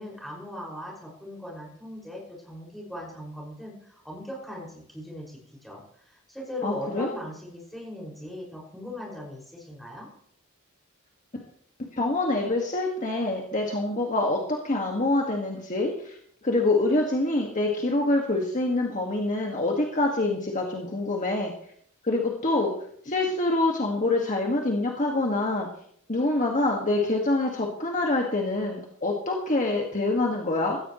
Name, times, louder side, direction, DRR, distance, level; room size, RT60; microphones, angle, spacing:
voice 1, 0.0-10.1, left 1 dB, ahead, -3 dB, 6.0 m, -39 dB
voice 2, 6.6-7.1 11.9-16.2 16.4-21.5 22.0-22.7 23.0-25.7 26.1-30.8, left 2 dB, 35° left, 0 dB, 1.9 m, -25 dB
16.5 x 15.0 x 3.2 m, 0.64 s
head